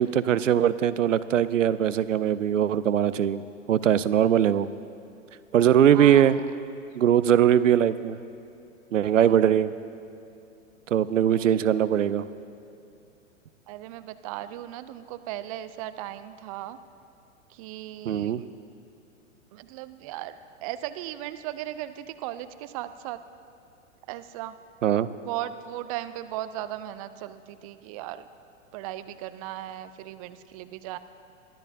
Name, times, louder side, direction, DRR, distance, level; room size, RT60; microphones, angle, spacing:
voice 1, 0.0-4.7 5.5-6.4 6.9-8.2 8.9-9.7 10.9-12.3 18.1-18.4 24.8-25.1, right 10 dB, 75° right, 15 dB, 0.6 m, -21 dB
voice 2, 5.9-6.4 9.2-9.6 11.3-11.6 13.7-16.8 17.5-18.5 19.5-23.2 24.1-24.6 25.3-28.3 28.7-31.0, right 13 dB, 30° right, 13 dB, 0.4 m, -37 dB
22.5 x 13.5 x 2.7 m, 2.6 s
figure-of-eight pair, 105°, 38 cm